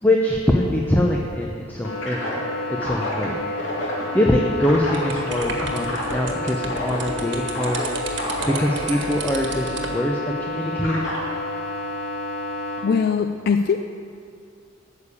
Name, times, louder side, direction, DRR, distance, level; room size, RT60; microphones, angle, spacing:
voice 1, 0.0-2.4 2.7-3.4 3.9-7.8 8.4-11.1, left 1 dB, 10° left, -1 dB, 0.7 m, -23 dB
sound 1, 1.8-12.8, left 1 dB, 80° left, 2.5 m, -28 dB
sound 2, 4.9-10.0, right 4 dB, 65° right, 1.4 m, -34 dB
voice 2, 12.8-13.8, left 6 dB, 50° left, 7 dB, 0.4 m, -21 dB
9.3 x 6.8 x 8.6 m, 2.4 s
head